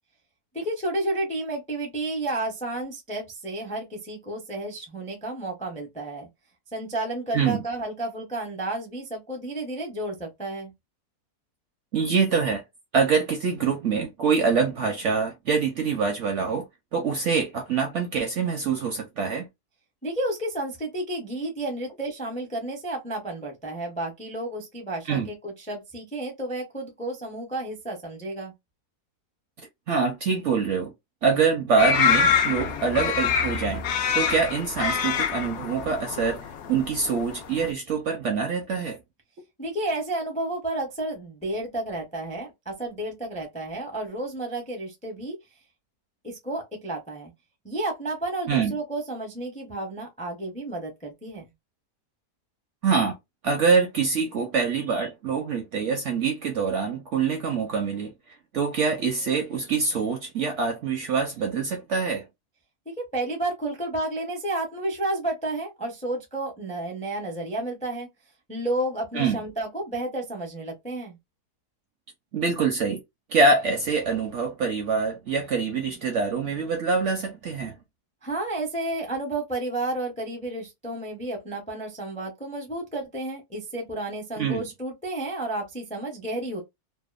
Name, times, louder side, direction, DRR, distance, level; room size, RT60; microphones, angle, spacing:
voice 1, 0.5-6.3 6.7-10.7 20.0-28.5 39.6-45.4 46.2-47.3 47.6-51.5 62.9-68.1 68.5-71.2 78.2-86.6, right 2 dB, 10° left, 0.4 m, -31 dB
voice 2, 11.9-12.6 12.9-16.6 16.9-19.5 25.1-25.3 29.9-30.9 31.2-33.8 34.1-39.0 48.5-48.8 52.8-53.2 53.4-58.1 58.5-62.2 69.1-69.4 72.3-73.0 73.3-77.8 84.4-84.6, right 5 dB, 65° right, 0.7 m, -25 dB
sound 1, 31.8-37.7, left 7 dB, 75° left, 0.6 m, -25 dB
2.8 x 2.2 x 2.3 m
omnidirectional pair, 1.7 m